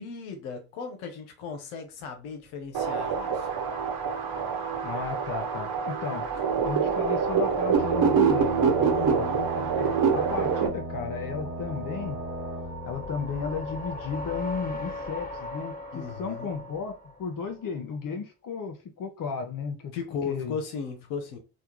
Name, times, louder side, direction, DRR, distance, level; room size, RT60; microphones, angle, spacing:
voice 1, 0.0-3.5 8.9-9.5 15.9-16.5 19.9-21.4, left 5 dB, 80° left, 0.7 m, -36 dB
sound 1, 2.5-17.7, left 2 dB, 20° left, 1.3 m, -41 dB
sound 2, 2.7-10.7, right 6 dB, 50° right, 1.0 m, -25 dB
voice 2, 4.8-6.3 6.6-9.3 9.6-12.2 12.8-16.9 17.2-19.9 20.2-20.6, left 5 dB, 45° left, 0.8 m, -34 dB
sound 3, 7.8-14.4, right 1 dB, 30° right, 1.1 m, -38 dB
3.4 x 2.3 x 2.9 m
hypercardioid pair, 40°, 44 cm